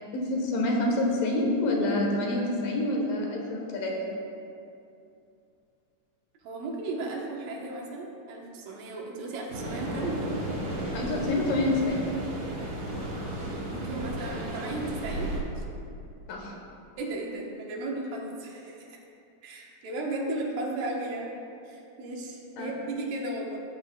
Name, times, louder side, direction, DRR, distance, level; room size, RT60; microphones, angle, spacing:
voice 1, 0.1-4.1 10.9-12.0 16.3-16.6 22.6-22.7, left 2 dB, 75° left, -1 dB, 2.8 m, -27 dB
voice 2, 6.4-10.3 13.7-15.6 17.0-19.0 19.4-21.3 21.7-23.6, right 2 dB, 80° right, -1 dB, 2.8 m, -35 dB
sound 1, 9.5-15.4, right 1 dB, 50° right, 2.1 m, -34 dB
15.0 x 8.6 x 2.3 m, 2.6 s
omnidirectional pair, 3.9 m